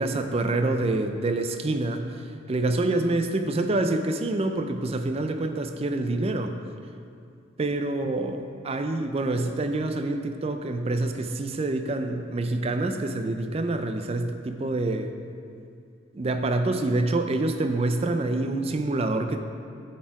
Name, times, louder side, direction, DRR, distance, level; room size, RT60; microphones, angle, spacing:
voice 1, 0.0-6.5 7.6-15.1 16.1-19.4, right 2 dB, 30° right, 7 dB, 0.4 m, -26 dB
9.3 x 4.4 x 4.7 m, 2.4 s
head